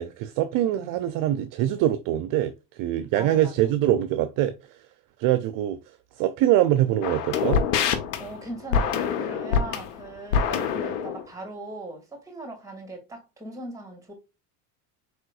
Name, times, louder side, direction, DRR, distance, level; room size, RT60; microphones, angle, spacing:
voice 1, 0.0-2.5 2.8-4.8 5.2-5.8 6.2-7.6, right 12 dB, 45° right, 0.5 m, -23 dB
voice 2, 0.6-1.0 3.1-3.7 8.2-14.1, right 1 dB, 5° right, 2.3 m, -40 dB
sound 1, 7.0-11.3, left 6 dB, 80° left, 0.9 m, -25 dB
4.8 x 3.8 x 2.4 m
hypercardioid pair, 90°, 47 cm